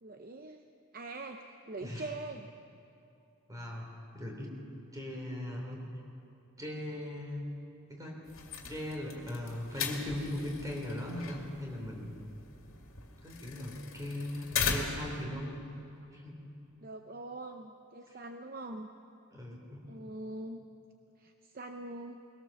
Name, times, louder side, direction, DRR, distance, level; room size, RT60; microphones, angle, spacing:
voice 1, 0.0-0.6 0.9-2.5 16.8-18.9 19.9-20.6 21.2-22.2, right 2 dB, 40° right, 5 dB, 0.7 m, -43 dB
voice 2, 1.8-2.1 3.5-4.5 4.9-6.0 6.6-7.4 7.9-8.2 8.7-12.1 13.2-15.5 16.1-16.4 18.1-18.2 19.3-19.8, left 1 dB, 15° right, -1 dB, 3.4 m, -39 dB
sound 1, 8.3-15.2, left 5 dB, 70° left, 2.2 m, -39 dB
21.5 x 18.0 x 7.1 m, 2.8 s
head